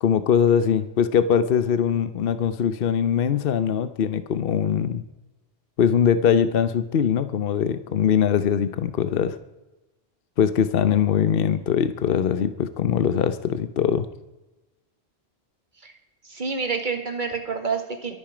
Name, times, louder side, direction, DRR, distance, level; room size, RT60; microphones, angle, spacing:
voice 1, 0.0-5.0 5.8-9.4 10.4-14.1, left 8 dB, 60° left, 12 dB, 0.9 m, -22 dB
voice 2, 16.2-18.2, right 5 dB, 45° right, 5 dB, 2.0 m, -28 dB
23.5 x 8.9 x 5.0 m, 1.0 s
omnidirectional pair, 1.2 m